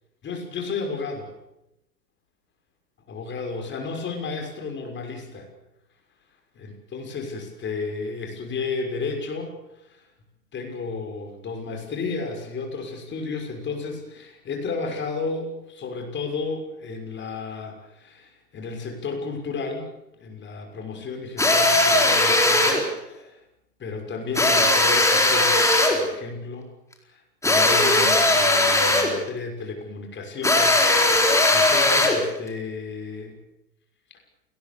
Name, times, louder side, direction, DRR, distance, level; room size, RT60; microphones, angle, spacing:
voice 1, 0.2-1.3 3.1-5.5 6.6-9.5 9.9-10.0 10.5-19.9 20.2-23.4 23.8-25.7 25.9-26.7 27.0-27.2 27.5-33.4, left 4 dB, 20° left, 3 dB, 6.2 m, -33 dB
sound 1, 21.4-22.8 24.3-26.0 27.4-29.2 30.4-32.2, left 2 dB, 5° left, 4.5 m, -18 dB
28.0 x 19.5 x 7.1 m, 0.88 s
hypercardioid pair, 110°, 49 cm